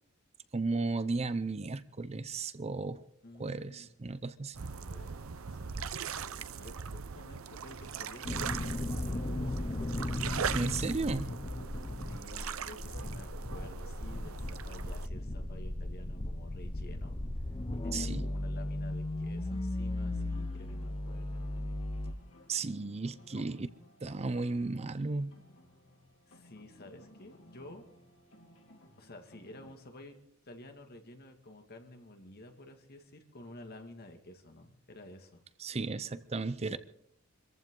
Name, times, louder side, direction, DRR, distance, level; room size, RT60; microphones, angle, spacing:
voice 1, 0.5-3.0 3.4-4.6 10.5-11.3 17.9-18.3 22.5-23.7 24.0-25.4 35.6-36.8, right 3 dB, 30° right, 0.6 m, -34 dB
voice 2, 3.2-3.9 4.7-9.8 12.1-17.2 17.7-21.5 23.4-23.6 26.3-27.8 29.0-30.2 30.5-35.4 36.6-36.8, left 1 dB, 50° left, 2.1 m, -52 dB
sound 1, 4.5-15.1, right 7 dB, 80° right, 0.7 m, -40 dB
sound 2, 8.2-22.1, left 1 dB, 25° left, 0.8 m, -36 dB
sound 3, 20.0-29.8, left 1 dB, 65° left, 3.6 m, -59 dB
25.5 x 14.5 x 3.8 m
head